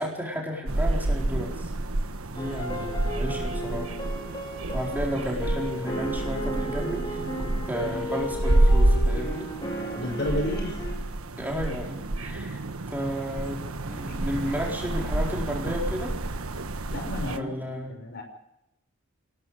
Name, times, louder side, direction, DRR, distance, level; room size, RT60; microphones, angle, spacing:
voice 1, 0.0-1.7 2.3-4.0 4.7-7.2 7.7-9.5 11.4-12.6 12.9-16.2 17.3-18.0, equal, 10° right, -1 dB, 4.3 m, -32 dB
sound 1, 0.7-17.4, right 1 dB, 80° right, 1.3 m, -28 dB
sound 2, 2.4-10.9, right 1 dB, 20° left, 4.8 m, -34 dB
voice 2, 9.8-10.8 16.9-17.5 17.9-18.2, left 1 dB, 50° left, 3 dB, 6.2 m, -31 dB
28.0 x 19.0 x 4.9 m, 0.82 s
head